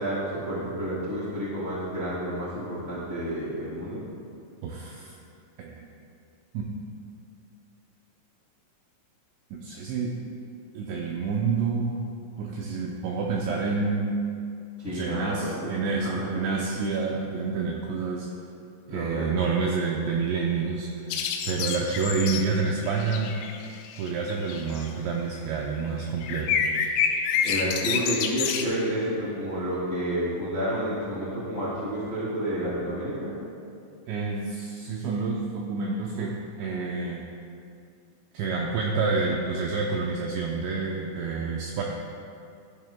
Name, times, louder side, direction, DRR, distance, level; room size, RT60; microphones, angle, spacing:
voice 1, 0.0-4.0 14.8-15.7 16.0-16.6 18.9-19.4 27.4-33.3, right 1 dB, 35° left, -9 dB, 1.3 m, -30 dB
voice 2, 4.6-5.2 5.6-5.9 6.5-6.7 9.5-10.1 10.7-12.0 12.4-14.2 14.9-18.3 18.9-23.3 24.0-26.6 34.1-37.2 38.3-41.8, right 4 dB, 80° right, -1 dB, 2.6 m, -28 dB
sound 1, 21.1-24.9 26.2-28.6, left 7 dB, 85° left, 3.1 m, -28 dB
15.5 x 12.0 x 2.2 m, 2.4 s
omnidirectional pair, 5.9 m